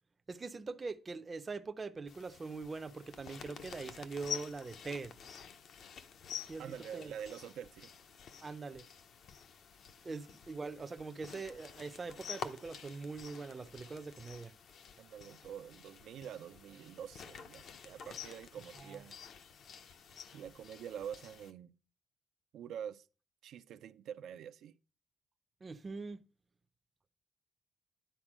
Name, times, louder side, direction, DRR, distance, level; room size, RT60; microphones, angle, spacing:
voice 1, 0.3-5.1 6.5-7.1 8.4-8.9 10.0-14.5 18.8-19.0 25.6-26.2, right 4 dB, 20° right, 0.5 m, -43 dB
sound 1, 2.1-21.5, left 8 dB, 55° left, 0.6 m, -49 dB
voice 2, 6.6-7.9 10.1-10.2 15.0-19.2 20.3-21.7 22.5-23.1 23.4-24.8, right 9 dB, 75° right, 0.4 m, -46 dB
10.5 x 4.3 x 6.1 m
cardioid pair, 170°, 0 cm